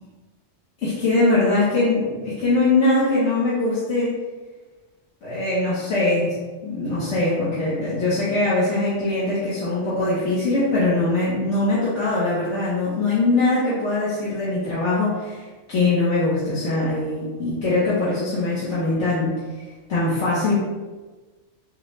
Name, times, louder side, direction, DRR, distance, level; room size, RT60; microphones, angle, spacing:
voice 1, 0.8-4.1 5.2-6.3 6.6-15.4 15.7-19.3 19.9-20.6, left 2 dB, 70° left, -10 dB, 1.4 m, -22 dB
6.4 x 2.3 x 3.1 m, 1.3 s
omnidirectional pair, 1.3 m